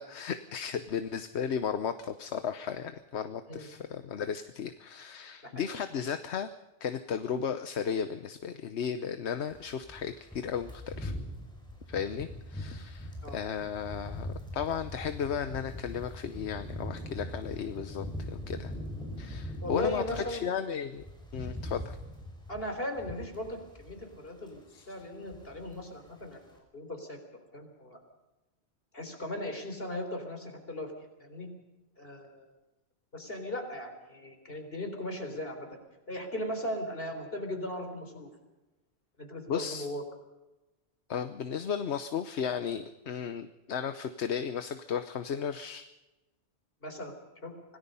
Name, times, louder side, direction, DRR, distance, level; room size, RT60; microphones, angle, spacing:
voice 1, 0.0-6.5 6.8-11.1 11.9-18.7 19.2-21.0 21.3-22.0 24.7-24.9 39.5-39.9 41.1-45.9, left 7 dB, 80° left, 9 dB, 1.2 m, -35 dB
sound 1, 9.5-20.4 20.7-24.2 24.4-24.7 25.0-25.8 26.1-26.3, left 1 dB, 5° left, 5.5 m, -41 dB
voice 2, 19.6-20.5 22.5-28.0 28.9-30.9 31.2-31.5 32.0-32.5 33.1-35.7 36.1-38.3 39.2-40.0 46.8-47.1 47.4-47.5, left 1 dB, 60° left, 5 dB, 4.1 m, -38 dB
26.0 x 18.0 x 5.5 m, 1.1 s
omnidirectional pair, 1.1 m